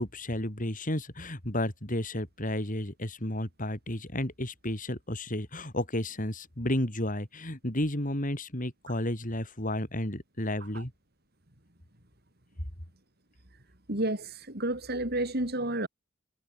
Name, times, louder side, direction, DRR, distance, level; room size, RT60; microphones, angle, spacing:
voice 1, 0.0-10.9, left 1 dB, 40° left, 4.9 m, -32 dB
voice 2, 13.9-15.9, right 1 dB, 50° right, 4.4 m, -31 dB
head